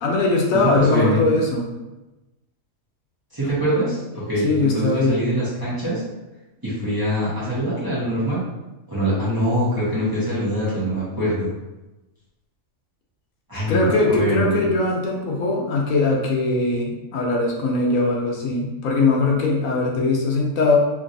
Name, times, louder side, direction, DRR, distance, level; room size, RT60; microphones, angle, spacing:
voice 1, 0.0-1.7 4.4-5.2 13.7-20.8, left 3 dB, 80° left, -1 dB, 1.1 m, -20 dB
voice 2, 0.5-1.2 3.3-4.0 4.3-6.0 6.6-8.4 8.9-11.5 13.5-14.6, equal, 20° right, -11 dB, 0.8 m, -23 dB
3.0 x 2.6 x 2.6 m, 1.0 s
omnidirectional pair, 1.4 m